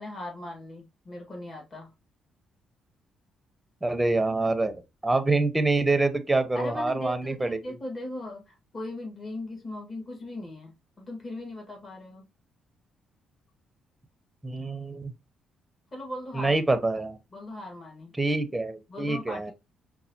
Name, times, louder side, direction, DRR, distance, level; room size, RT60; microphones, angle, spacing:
voice 1, 0.0-1.9 6.5-12.3 15.9-16.6 17.3-18.2 18.9-19.5, left 2 dB, 35° left, 1.5 m, -38 dB
voice 2, 3.8-7.6 14.4-15.1 16.3-17.2 18.2-19.5, right 2 dB, 10° right, 0.6 m, -26 dB
5.3 x 2.3 x 2.7 m
cardioid pair, 90°, 0 cm